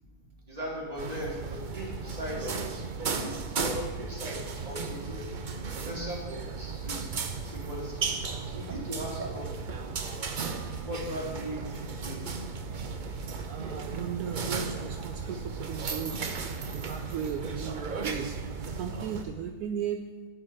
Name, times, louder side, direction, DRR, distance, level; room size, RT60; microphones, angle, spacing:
voice 1, 0.5-2.5 3.2-3.3 3.6-4.4 4.6-5.2 5.8-7.1 7.4-7.9 8.3-9.5 10.8-12.4, equal, 25° right, -4 dB, 2.7 m, -38 dB
sound 1, 1.0-19.2, right 5 dB, 45° right, 0.6 m, -35 dB
voice 2, 13.4-20.0, right 8 dB, 75° right, 5 dB, 1.1 m, -36 dB
10.5 x 4.9 x 7.5 m, 1.3 s
omnidirectional pair, 1.6 m